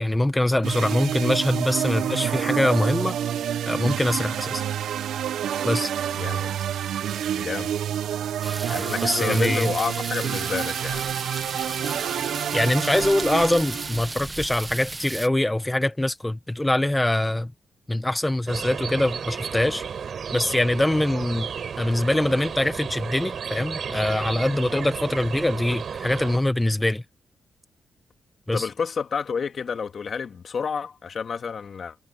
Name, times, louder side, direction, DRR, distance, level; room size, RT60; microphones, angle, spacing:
voice 1, 0.0-3.2 3.6-4.6 5.6-5.9 9.0-9.7 12.5-17.5 17.9-19.8 20.3-21.5 21.8-27.0 28.5-28.7, left 1 dB, 10° left, 1.5 m, -23 dB
sound 1, 0.6-14.1, right 10 dB, 80° right, 1.0 m, -28 dB
voice 2, 6.1-6.6 7.3-7.7 8.7-11.1 28.5-32.0, left 6 dB, 55° left, 2.2 m, -30 dB
sound 2, 8.4-15.3, right 2 dB, 25° right, 1.5 m, -35 dB
sound 3, 18.5-26.4, right 7 dB, 60° right, 4.6 m, -33 dB
cardioid pair, 65°, 0 cm